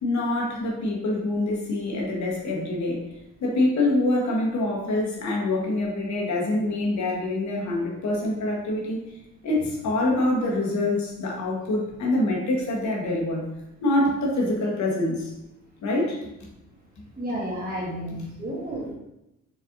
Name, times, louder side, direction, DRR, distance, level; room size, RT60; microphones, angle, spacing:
voice 1, 0.0-3.0 3.4-9.0 9.4-13.4 13.8-15.3 15.8-16.2, left 2 dB, 65° left, -2 dB, 1.2 m, -25 dB
voice 2, 17.2-18.9, equal, 30° right, -4 dB, 1.5 m, -31 dB
4.2 x 4.1 x 2.5 m, 0.88 s
cardioid pair, 90°, 30 cm